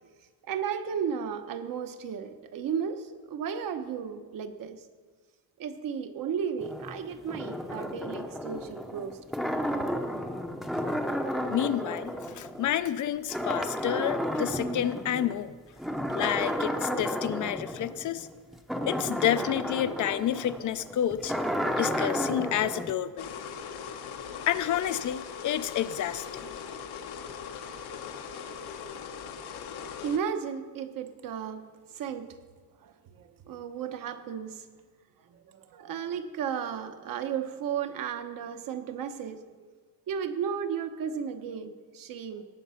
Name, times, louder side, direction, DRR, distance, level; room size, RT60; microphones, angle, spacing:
voice 1, 0.4-4.8 5.6-9.2 30.0-32.4 32.8-34.7 35.2-39.5 40.1-42.5, right 7 dB, 60° right, 8 dB, 1.0 m, -34 dB
sound 1, 6.6-13.0 13.3-15.3 15.8-22.9, equal, ahead, 0.6 m, -32 dB
voice 2, 11.5-15.5 16.1-18.3 18.9-21.3 21.8-23.3 24.5-26.5, left 11 dB, 55° left, 13 dB, 0.5 m, -29 dB
sound 2, 23.2-30.2, left 7 dB, 85° left, 1.2 m, -40 dB
18.0 x 7.2 x 5.7 m, 1.4 s
cardioid pair, 165°, 38 cm